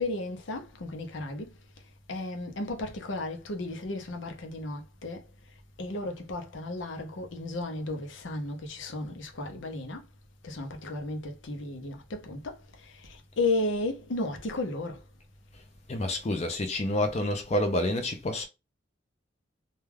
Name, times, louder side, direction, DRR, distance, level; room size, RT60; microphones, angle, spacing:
voice 1, 0.0-1.5 2.1-5.3 5.8-10.0 10.4-15.0, left 2 dB, 90° left, 0.6 m, -34 dB
voice 2, 15.9-18.5, left 1 dB, 35° left, 0.4 m, -28 dB
2.3 x 2.2 x 3.2 m
head